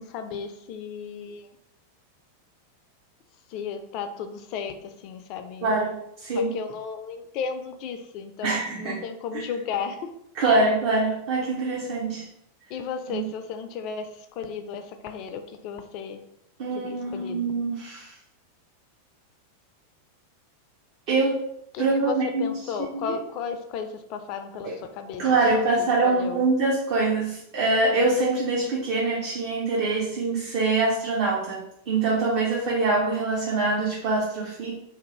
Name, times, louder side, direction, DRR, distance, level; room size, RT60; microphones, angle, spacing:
voice 1, 0.0-1.5 3.5-5.7 6.4-10.1 12.7-16.2 16.7-17.5 21.7-26.4, left 6 dB, 40° left, 7 dB, 0.3 m, -34 dB
voice 2, 5.6-6.5 8.4-9.0 9.3-9.4 10.3-12.3 13.1-13.3 16.6-18.1 21.1-21.5 21.8-22.5 22.9-23.1 24.6-24.8 25.2-34.7, right 3 dB, 50° right, -3 dB, 0.6 m, -24 dB
2.6 x 2.4 x 2.9 m, 0.77 s
figure-of-eight pair, 90°, 0 cm